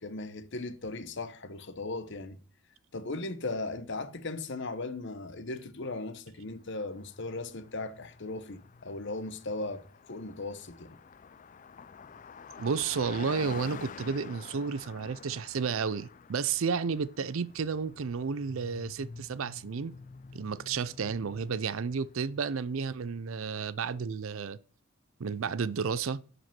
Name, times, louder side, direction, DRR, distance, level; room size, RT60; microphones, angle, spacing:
voice 1, 0.0-2.4 2.9-11.0, left 2 dB, 55° left, 0.9 m, -37 dB
Car passing by, 6.7-22.7, left 5 dB, 35° left, 0.4 m, -49 dB
voice 2, 12.6-19.9 20.3-24.6 25.2-26.2, right 5 dB, 65° right, 0.5 m, -32 dB
11.0 x 5.1 x 5.9 m
head